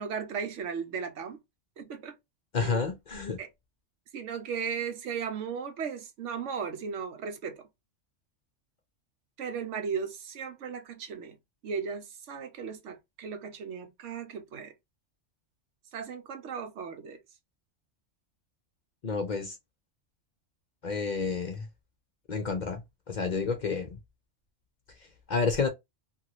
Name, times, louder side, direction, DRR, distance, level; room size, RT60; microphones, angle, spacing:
voice 1, 0.0-1.4 1.8-2.2 2.6-2.9 3.4-3.5 4.1-7.7 9.4-11.4 11.6-14.7 15.9-17.2, right 6 dB, 75° right, 1.1 m, -36 dB
voice 2, 2.5-3.4 19.0-19.5 20.8-21.7 22.3-22.8 23.1-24.0 25.3-25.7, left 4 dB, 50° left, 0.6 m, -29 dB
2.7 x 2.6 x 2.9 m
omnidirectional pair, 1.3 m